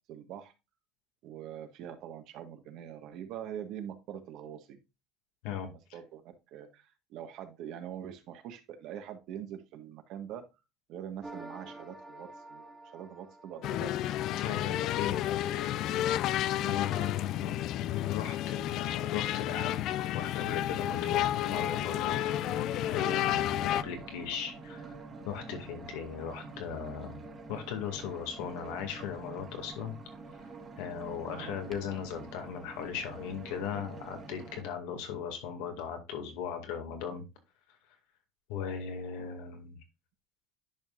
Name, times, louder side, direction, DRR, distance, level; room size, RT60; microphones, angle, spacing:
voice 1, 0.1-0.5 1.2-4.8 5.6-10.4 10.9-13.9 16.4-16.8 31.2-31.6 39.2-39.3, right 10 dB, 60° right, 7 dB, 1.4 m, -44 dB
sound 1, 11.2-14.6, right 2 dB, 5° right, 1.6 m, -49 dB
sound 2, 13.6-23.8, left 13 dB, 55° left, 0.4 m, -31 dB
voice 2, 14.4-15.2 15.4-15.8 16.6-17.5 17.9-19.8 20.1-22.2 22.9-25.0 25.2-27.2 27.5-29.9 30.8-37.2 38.5-39.8, left 8 dB, 80° left, 5 dB, 2.1 m, -37 dB
sound 3, 20.9-34.6, right 3 dB, 30° right, 1.6 m, -47 dB
10.5 x 5.4 x 2.5 m, 0.25 s
cardioid pair, 135°, 0 cm